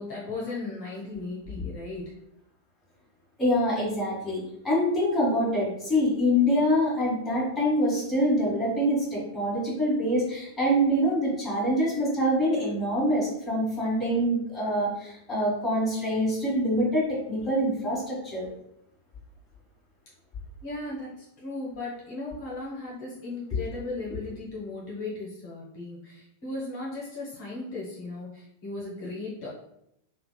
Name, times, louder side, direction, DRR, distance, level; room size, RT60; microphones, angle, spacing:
voice 1, 0.0-2.1 20.6-29.5, left 2 dB, 45° left, -6 dB, 0.9 m, -36 dB
voice 2, 3.4-18.5 23.5-23.6, equal, 15° left, -6 dB, 1.3 m, -25 dB
2.7 x 2.4 x 2.2 m, 0.78 s
figure-of-eight pair, 90°, 0 cm